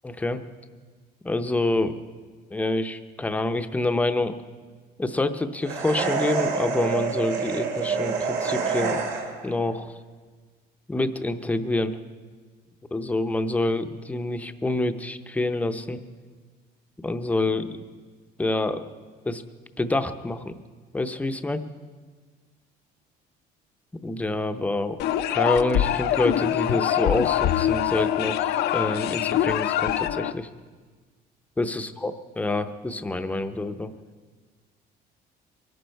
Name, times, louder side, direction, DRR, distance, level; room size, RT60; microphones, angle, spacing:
voice 1, 0.0-0.4 1.2-2.0 2.5-4.4 5.0-9.1 9.4-10.0 10.9-12.0 12.9-16.0 17.0-17.8 18.4-18.8 19.3-19.4 19.8-20.6 20.9-21.6 24.0-25.0 25.3-30.5 31.6-33.9, left 2 dB, 10° left, 9 dB, 0.6 m, -27 dB
sound 1, 5.6-9.5, right 5 dB, 85° right, 2.3 m, -27 dB
sound 2, 25.0-30.3, left 11 dB, 65° left, 0.5 m, -24 dB
23.0 x 11.5 x 4.5 m, 1.5 s
cardioid pair, 150°, 18 cm